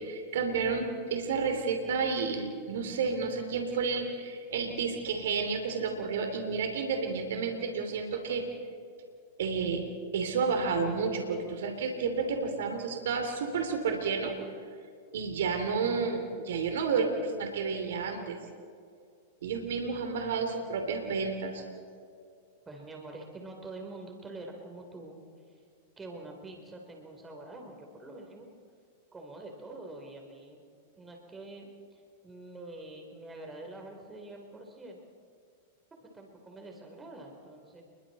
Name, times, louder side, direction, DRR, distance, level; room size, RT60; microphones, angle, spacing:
voice 1, 0.0-8.4 9.4-9.9 10.1-14.4 15.1-18.4 19.4-21.6, right 5 dB, 70° right, 5 dB, 3.0 m, -31 dB
voice 2, 15.6-16.3 20.2-20.3 22.7-25.2 25.5-25.6 26.0-28.5 29.1-30.6 31.0-35.0 36.0-37.8, right 2 dB, 15° right, 2 dB, 3.6 m, -46 dB
29.0 x 22.5 x 4.2 m, 2.4 s
hypercardioid pair, 105°, 0 cm